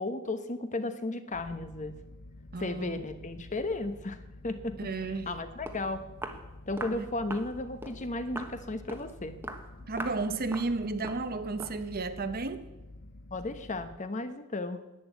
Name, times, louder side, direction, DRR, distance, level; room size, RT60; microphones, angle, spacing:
voice 1, 0.0-2.0 2.6-4.2 4.4-4.8 5.3-6.0 6.7-9.4 13.3-14.8, left 2 dB, 35° left, 9 dB, 1.0 m, -34 dB
sound 1, 1.3-14.0, left 2 dB, 55° left, 0.7 m, -49 dB
voice 2, 2.5-3.0 4.8-5.3 6.9-7.1 9.8-12.6, right 3 dB, 45° right, 11 dB, 0.9 m, -33 dB
Walk footsteps, 5.7-5.8 6.2-6.4 6.8-7.0 7.3-7.5 7.8-8.0 8.4-8.6 8.9-9.1 9.4-9.7 10.0-10.2 10.5-10.7 11.0-11.3 11.6-11.8, right 1 dB, 10° right, 1.1 m, -40 dB
11.0 x 9.3 x 9.1 m, 1.0 s
head